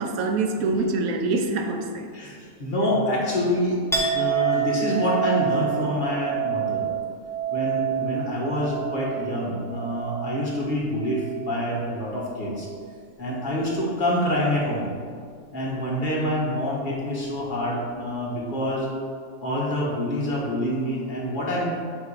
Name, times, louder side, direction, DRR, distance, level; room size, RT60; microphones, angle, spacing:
voice 1, 0.0-2.1, right 3 dB, 75° right, 4 dB, 1.1 m, -25 dB
voice 2, 2.1-3.8 4.1-6.9 7.5-12.7 13.2-14.9 15.5-18.9 19.4-21.6, left 1 dB, 35° left, -5 dB, 1.3 m, -26 dB
Chink clink, 3.9-11.6 11.9-12.6, right 9 dB, 5° left, 0.5 m, -28 dB
8.0 x 2.8 x 4.8 m, 2.1 s
omnidirectional pair, 1.5 m